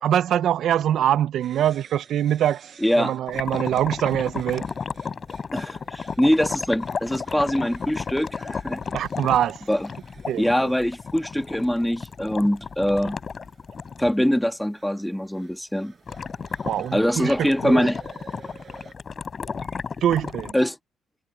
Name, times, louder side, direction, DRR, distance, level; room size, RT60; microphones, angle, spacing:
voice 1, 0.0-4.7 8.9-9.6 10.3-10.7 16.6-17.3 17.6-17.9 20.0-20.5, right 10 dB, 75° right, 0.5 m, -23 dB
sound 1, 1.4-18.9, right 6 dB, 45° right, 7.7 m, -53 dB
voice 2, 2.8-3.1 5.5-8.8 9.7-9.9 10.4-13.2 14.0-15.9 16.9-18.0 20.5-20.8, equal, 5° left, 1.7 m, -23 dB
sound 2, 3.3-14.2 16.1-20.5, left 5 dB, 40° left, 4.2 m, -33 dB
cardioid pair, 90°, 0 cm